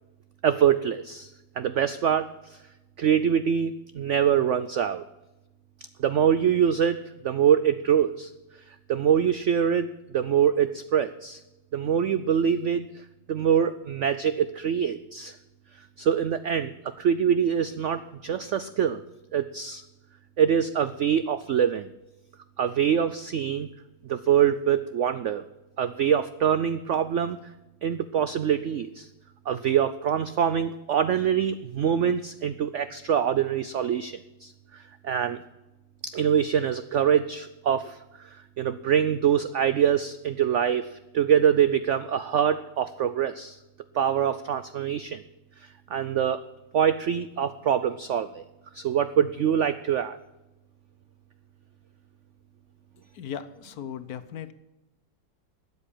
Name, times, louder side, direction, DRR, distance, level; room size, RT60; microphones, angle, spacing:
voice 1, 0.4-2.6 3.0-5.0 6.0-7.0 7.2-8.3 8.7-9.9 10.1-11.4 11.7-15.4 16.0-19.0 19.3-19.8 20.4-21.9 22.6-23.7 24.0-25.4 25.8-27.4 27.8-29.1 29.5-35.4 36.0-43.6 43.9-45.2 45.6-46.4 46.7-48.4 48.7-50.2, right 8 dB, 90° right, 13 dB, 0.6 m, -24 dB
voice 2, 53.1-54.5, left 8 dB, 65° left, 13 dB, 1.2 m, -37 dB
13.0 x 8.2 x 8.5 m, 1.0 s
omnidirectional pair, 1.9 m